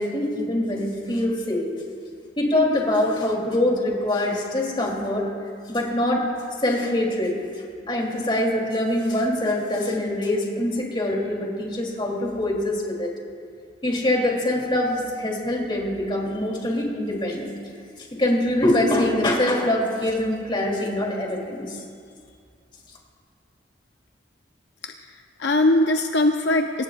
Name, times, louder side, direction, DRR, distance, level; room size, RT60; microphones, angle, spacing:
voice 1, 0.0-1.7 2.4-5.3 5.7-6.2 6.6-7.3 7.9-13.1 13.8-17.5 18.1-21.8, left 1 dB, 25° left, -2 dB, 3.2 m, -24 dB
voice 2, 24.8-26.8, left 1 dB, 70° left, 4 dB, 0.6 m, -21 dB
24.5 x 18.5 x 2.5 m, 2.2 s
head